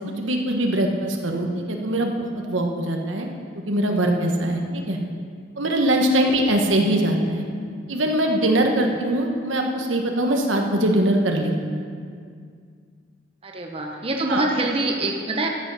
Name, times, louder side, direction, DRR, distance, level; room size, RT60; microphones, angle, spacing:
voice 1, 0.2-2.1 2.5-3.3 3.5-5.0 5.6-7.4 7.9-11.8 14.3-14.5, right 1 dB, 85° right, 2 dB, 1.3 m, -22 dB
voice 2, 13.4-15.5, right 2 dB, 30° right, 1 dB, 0.9 m, -25 dB
13.0 x 7.7 x 5.7 m, 2.1 s
head